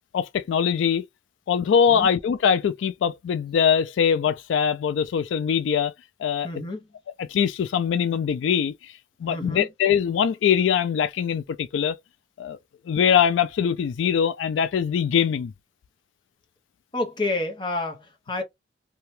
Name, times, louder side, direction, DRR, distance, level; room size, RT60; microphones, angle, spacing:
voice 1, 0.1-1.0 1.5-5.9 6.2-6.5 7.2-8.9 9.2-12.0 12.4-12.6 12.9-15.5, left 7 dB, 85° left, 0.3 m, -22 dB
voice 2, 6.4-6.8 9.3-9.7 16.9-18.4, left 2 dB, 25° left, 0.7 m, -29 dB
2.7 x 2.2 x 3.1 m
head